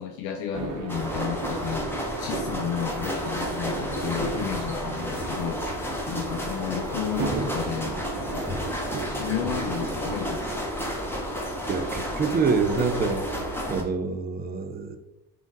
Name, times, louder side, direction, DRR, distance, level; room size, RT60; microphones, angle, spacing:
voice 1, 0.0-5.6 6.1-8.5 9.2-10.7, left 9 dB, 65° left, 4 dB, 0.5 m, -33 dB
sound 1, 0.5-10.2, right 5 dB, 45° right, 0.7 m, -36 dB
sound 2, 0.9-13.8, equal, 5° left, 0.7 m, -31 dB
voice 2, 11.7-13.2 13.7-15.0, right 5 dB, 25° right, 8 dB, 0.4 m, -26 dB
3.7 x 2.4 x 3.8 m, 0.89 s
supercardioid pair, 90°, 42 cm